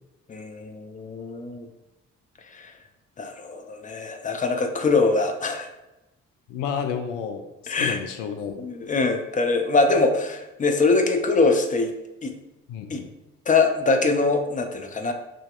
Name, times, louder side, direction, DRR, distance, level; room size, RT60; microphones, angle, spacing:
voice 1, 0.3-1.7 2.5-2.7 3.2-5.7 7.7-8.0 8.6-11.9 12.2-12.3 12.9-13.0 13.5-15.1, left 3 dB, 20° left, 5 dB, 0.5 m, -23 dB
voice 2, 6.5-8.7 12.7-13.1, left 7 dB, 70° left, 6 dB, 0.5 m, -31 dB
4.8 x 2.9 x 2.4 m, 0.97 s
figure-of-eight pair, 40°, 38 cm